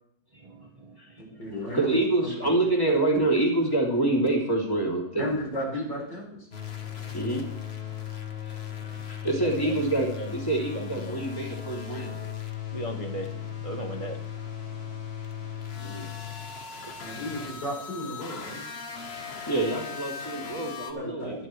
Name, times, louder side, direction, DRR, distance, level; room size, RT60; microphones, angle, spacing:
voice 1, 0.4-1.0 1.3-1.4 7.0-7.2 8.8-8.9 9.4-9.8 10.2-10.3 10.7-11.2 12.7-14.2 14.6-15.1 15.4-16.1 16.9-17.0 17.4-17.5 21.2-21.5, right 2 dB, 30° right, 3 dB, 0.7 m, -39 dB
voice 2, 1.2-1.9 2.2-2.5 5.2-6.5 17.0-18.7 20.9-21.5, equal, 80° left, -2 dB, 4.9 m, -34 dB
voice 3, 1.7-5.2 7.1-7.4 8.1-8.6 8.8-12.2 15.8-16.1 16.5-16.6 19.5-21.5, right 2 dB, 10° left, -2 dB, 2.9 m, -27 dB
sound 1, 6.5-20.9, left 8 dB, 40° left, 1.4 m, -37 dB
21.0 x 11.0 x 3.2 m, 0.71 s
omnidirectional pair, 1.9 m